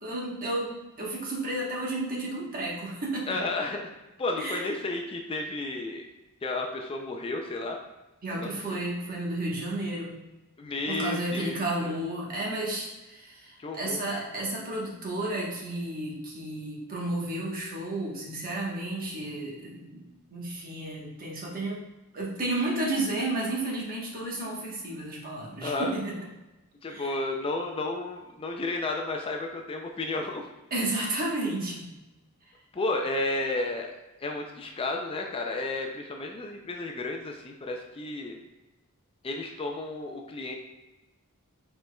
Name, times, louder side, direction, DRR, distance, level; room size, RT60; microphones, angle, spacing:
voice 1, 0.0-3.4 4.4-4.7 8.2-10.2 10.9-21.8 22.1-26.2 26.9-27.2 30.7-31.9, right 2 dB, 40° right, -3 dB, 1.1 m, -32 dB
voice 2, 3.3-3.9 4.2-6.0 6.4-7.8 8.4-8.8 10.6-11.9 13.6-14.2 25.6-25.9 26.8-30.4 32.7-33.9 34.2-38.4 39.2-40.5, left 2 dB, 25° left, 2 dB, 0.4 m, -32 dB
5.0 x 4.3 x 2.2 m, 1.0 s
head